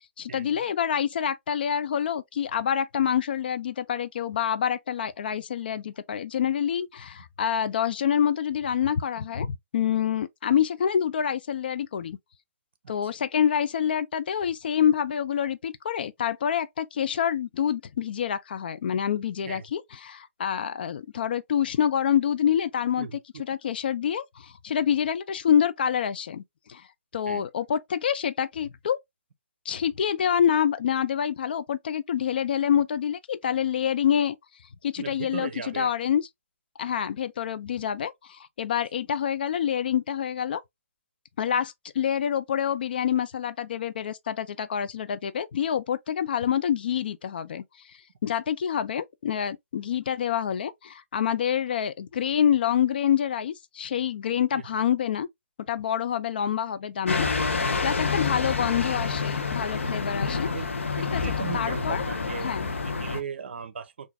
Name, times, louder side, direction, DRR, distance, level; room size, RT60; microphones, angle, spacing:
voice 1, 0.2-12.2 12.9-23.1 23.4-26.4 26.7-26.8 27.1-29.0 29.7-34.4 34.8-36.2 36.8-40.6 41.4-47.6 48.2-55.3 55.7-57.3 57.8-60.5 61.1-61.2 61.5-62.0 62.4-62.7, left 9 dB, 45° left, 0.4 m, -27 dB
voice 2, 35.0-35.9 54.5-54.7 58.4-58.8 60.5-60.7 61.0-64.1, right 6 dB, 55° right, 0.7 m, -38 dB
sound 1, 57.1-63.2, left 4 dB, 65° left, 0.8 m, -28 dB
3.8 x 2.5 x 2.7 m
figure-of-eight pair, 140°, 7 cm